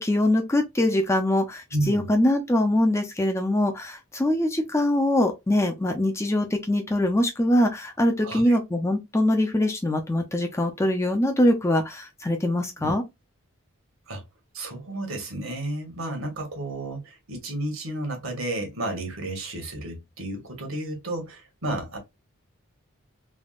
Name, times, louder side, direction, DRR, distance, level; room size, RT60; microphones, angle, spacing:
voice 1, 0.0-13.0, left 1 dB, 10° left, 0.5 m, -23 dB
voice 2, 1.7-2.1 8.2-8.6 12.8-12.9 14.1-14.2 14.5-22.0, right 1 dB, 65° right, 1.1 m, -32 dB
3.4 x 2.2 x 2.4 m
head